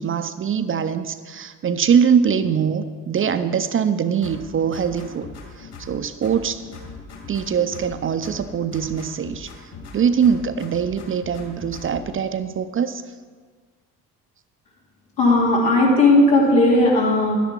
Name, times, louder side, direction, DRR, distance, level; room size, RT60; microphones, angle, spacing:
voice 1, 0.0-5.3 5.6-6.7 7.3-13.0, right 7 dB, 30° right, 11 dB, 0.5 m, -22 dB
sound 1, 4.2-6.0 6.2-8.0 8.2-10.0 10.2-12.1, left 4 dB, 55° left, 3.0 m, -40 dB
voice 2, 15.2-17.4, left 2 dB, 85° left, -5 dB, 2.9 m, -16 dB
11.0 x 10.0 x 4.4 m, 1.5 s
hypercardioid pair, 55°, 47 cm